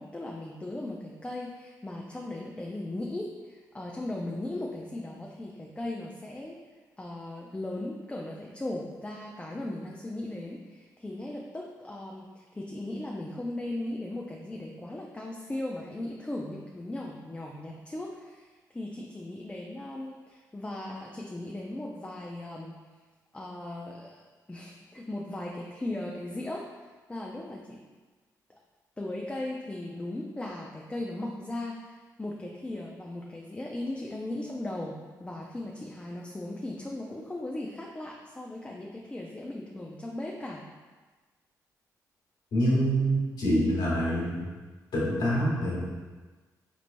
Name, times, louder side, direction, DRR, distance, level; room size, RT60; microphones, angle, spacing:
voice 1, 0.0-6.6 7.0-22.8 23.3-27.8 29.0-40.6, left 1 dB, 15° left, -1 dB, 0.4 m, -37 dB
voice 2, 42.5-44.4 44.9-45.8, equal, 75° left, -7 dB, 1.5 m, -26 dB
4.0 x 3.0 x 2.6 m, 1.3 s
cardioid pair, 65°, 7 cm